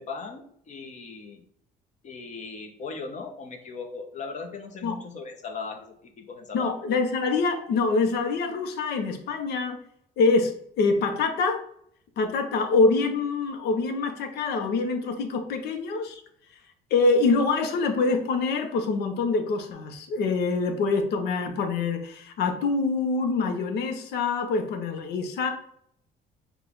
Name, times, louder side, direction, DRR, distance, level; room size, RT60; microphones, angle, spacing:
voice 1, 0.0-1.4 2.0-6.7, left 4 dB, 45° left, 4 dB, 1.0 m, -38 dB
voice 2, 6.5-9.8 10.2-11.6 12.2-16.2 16.9-25.5, left 3 dB, 75° left, 5 dB, 0.8 m, -25 dB
5.4 x 2.4 x 3.8 m, 0.68 s
cardioid pair, 110°, 17 cm